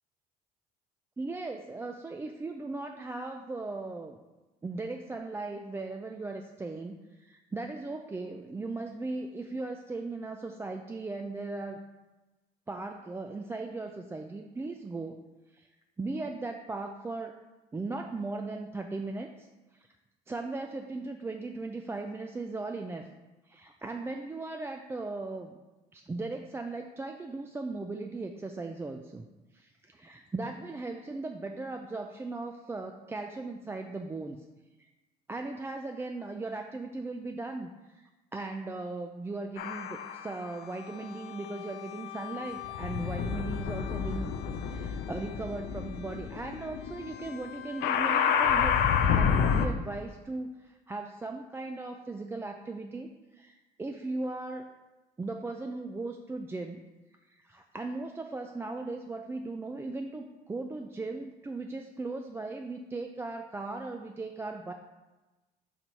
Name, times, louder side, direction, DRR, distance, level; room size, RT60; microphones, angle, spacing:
voice 1, 1.2-4.2 4.6-11.8 12.7-15.2 15.5-15.7 16.0-17.3 17.7-19.9 20.3-23.1 23.5-25.6 25.9-29.3 29.5-34.4 34.8-34.9 35.3-44.3 44.6-48.8 49.1-54.7 55.2-56.8 57.3-64.7, right 3 dB, 15° right, 4 dB, 0.3 m, -38 dB
sound 1, 39.6-40.3 41.1-49.7, left 7 dB, 80° left, 0.5 m, -30 dB
4.6 x 4.3 x 5.2 m, 1.1 s
cardioid pair, 110°, 17 cm